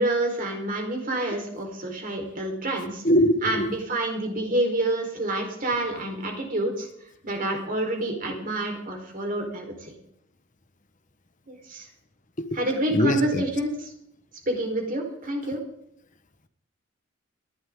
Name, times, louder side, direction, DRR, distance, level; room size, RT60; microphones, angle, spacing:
voice 1, 0.0-3.0 3.4-6.9 7.2-9.9 11.5-11.9 12.5-13.9 14.5-15.6, right 1 dB, 45° right, 1 dB, 4.5 m, -28 dB
voice 2, 3.0-3.7 12.4-12.6 12.9-13.4, equal, 40° left, 9 dB, 1.3 m, -22 dB
29.0 x 12.0 x 3.9 m, 0.73 s
head